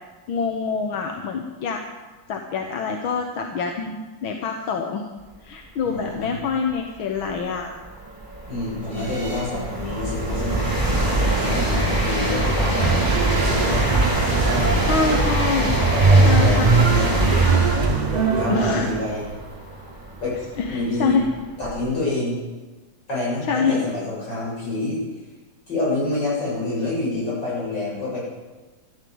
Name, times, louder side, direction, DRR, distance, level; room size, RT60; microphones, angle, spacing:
voice 1, 0.3-1.8 2.3-4.0 4.2-5.0 5.4-7.7 14.8-15.8 16.3-16.9 18.5-18.9 20.6-21.3 23.5-23.8, left 5 dB, 90° left, 3 dB, 2.0 m, -25 dB
voice 2, 5.8-6.4 8.5-13.0 13.4-13.9 14.2-15.3 15.8-17.3 18.3-19.3 20.2-20.4 20.7-21.2 21.6-22.4 23.1-25.0 25.7-28.2, left 2 dB, 60° left, -6 dB, 7.5 m, -27 dB
sound 1, 6.5-6.6 7.2-22.0, right 1 dB, 10° right, 5.2 m, -24 dB
sound 2, 12.8-19.0, right 4 dB, 65° right, 0.4 m, -20 dB
13.5 x 13.0 x 7.9 m, 1.2 s
omnidirectional pair, 2.2 m